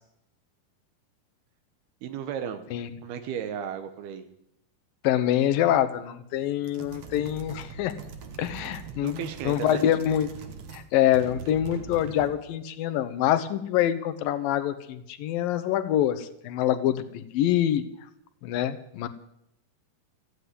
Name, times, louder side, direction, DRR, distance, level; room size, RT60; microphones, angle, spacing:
voice 1, 2.0-2.7 3.0-4.3 8.9-9.8, right 8 dB, 90° right, 8 dB, 3.2 m, -34 dB
voice 2, 5.0-7.9 8.4-10.3 10.7-17.8 18.4-19.1, left 11 dB, 75° left, 12 dB, 2.6 m, -25 dB
sound 1, 6.6-10.9 11.1-12.4, right 6 dB, 55° right, 2.2 m, -42 dB
14.5 x 9.4 x 9.8 m, 0.76 s
omnidirectional pair, 4.4 m